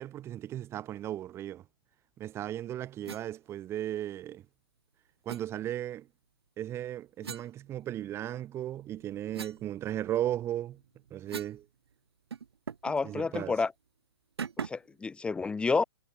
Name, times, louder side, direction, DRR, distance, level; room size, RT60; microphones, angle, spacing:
voice 1, 0.0-1.6 2.2-4.4 5.2-6.1 6.6-10.8 11.1-11.6 13.0-13.6, right 12 dB, 20° right, 1.2 m, -36 dB
sound 1, 3.0-3.3 5.3-5.4 7.2-8.3 8.7-11.6 11.9-12.0 12.3-13.0 13.3-13.5 14.4-14.9, right 6 dB, 85° right, 2.1 m, -42 dB
voice 2, 12.8-13.7 14.6-15.8, left 4 dB, 10° left, 1.0 m, -30 dB
hypercardioid pair, 140°, 13 cm